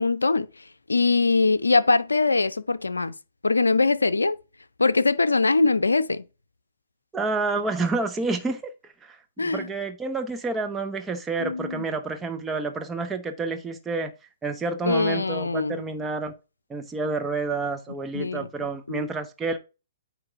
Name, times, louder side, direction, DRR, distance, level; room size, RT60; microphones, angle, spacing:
voice 1, 0.0-3.1 3.4-4.4 4.8-6.2 9.4-9.7 11.4-11.8 14.8-15.8 18.1-18.5 18.9-19.1, left 3 dB, 85° left, 0.5 m, -22 dB
voice 2, 7.1-8.7 9.1-9.2 9.4-14.1 14.4-16.3 16.7-19.6, right 3 dB, 10° right, 1.0 m, -29 dB
8.9 x 3.2 x 4.6 m
figure-of-eight pair, 125°, 0 cm